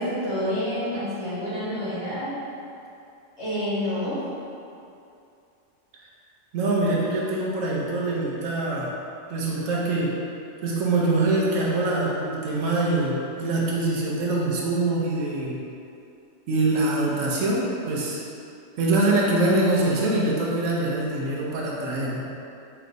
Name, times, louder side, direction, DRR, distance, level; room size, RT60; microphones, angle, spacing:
voice 1, 0.0-2.3 3.4-4.2, equal, 25° left, -15 dB, 1.4 m, -28 dB
voice 2, 6.5-8.9 9.3-10.2 10.6-15.6 16.5-18.2 18.8-22.2, right 2 dB, 75° right, -4 dB, 1.0 m, -24 dB
4.3 x 2.9 x 2.6 m, 2.6 s
omnidirectional pair, 1.4 m